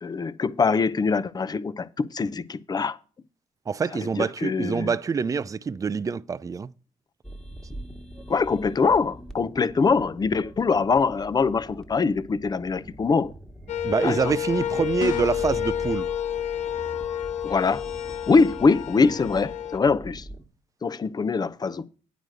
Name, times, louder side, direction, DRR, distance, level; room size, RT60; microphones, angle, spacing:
voice 1, 0.0-3.0 3.9-4.9 8.3-13.3 14.0-14.3 17.4-17.8 18.3-20.3 20.8-21.9, left 4 dB, 30° left, 0.6 m, -23 dB
voice 2, 3.7-6.7 13.8-16.1, right 5 dB, 25° right, 0.4 m, -26 dB
sound 1, 7.2-20.4, right 1 dB, 5° left, 1.5 m, -42 dB
sound 2, 13.7-19.8, left 10 dB, 60° left, 0.8 m, -30 dB
sound 3, 15.0-15.6, left 12 dB, 75° left, 0.4 m, -34 dB
9.1 x 5.0 x 7.8 m
cardioid pair, 85°, 14 cm